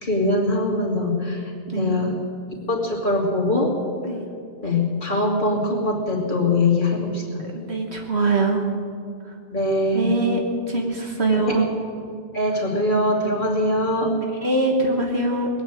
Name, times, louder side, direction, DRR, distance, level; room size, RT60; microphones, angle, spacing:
voice 1, 0.0-2.2 2.7-3.8 4.6-7.4 9.5-10.1 11.3-11.6 12.3-14.1, left 2 dB, 45° left, -2 dB, 2.7 m, -22 dB
voice 2, 7.5-8.6 9.9-10.4 10.7-11.6 14.4-15.5, right 2 dB, 60° right, 2 dB, 1.7 m, -22 dB
20.0 x 8.0 x 9.0 m, 2.4 s
omnidirectional pair, 1.2 m